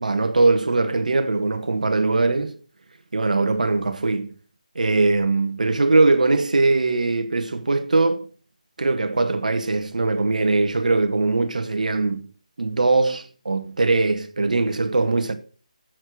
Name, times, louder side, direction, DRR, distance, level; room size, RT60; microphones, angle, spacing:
voice 1, 0.0-2.5 3.1-4.3 4.7-8.3 8.8-12.3 12.6-15.3, right 3 dB, 75° right, 1.3 m, -21 dB
7.7 x 6.4 x 6.2 m
figure-of-eight pair, 160°, 4 cm